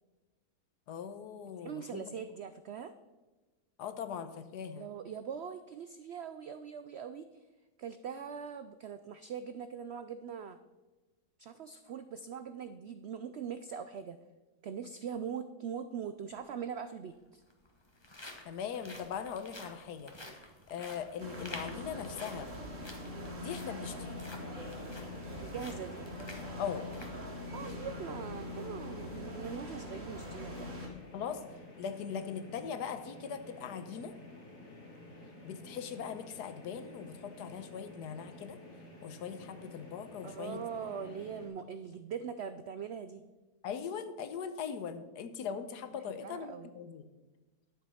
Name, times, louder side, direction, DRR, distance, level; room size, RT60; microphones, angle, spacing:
voice 1, 0.9-2.1 3.8-4.9 18.4-20.1 20.7-22.5 23.4-24.2 26.6-26.8 31.1-31.4 31.8-34.1 35.4-38.6 39.0-40.9 43.6-47.1, left 7 dB, 90° left, 10 dB, 1.4 m, -40 dB
voice 2, 1.6-2.9 4.7-7.3 7.8-10.6 11.4-14.2 14.6-17.4 23.9-24.0 25.4-26.0 27.5-30.7 40.2-43.2 46.1-46.7, right 7 dB, 85° right, 11 dB, 0.5 m, -42 dB
sound 1, 16.3-16.4 17.3-27.9 28.3-28.4 28.9-29.2, left 1 dB, 20° left, 1.3 m, -51 dB
sound 2, 21.2-30.9, left 1 dB, 50° right, 2.4 m, -43 dB
sound 3, 24.3-41.5, left 2 dB, 55° left, 2.5 m, -52 dB
11.0 x 7.1 x 5.6 m, 1.2 s
omnidirectional pair, 1.7 m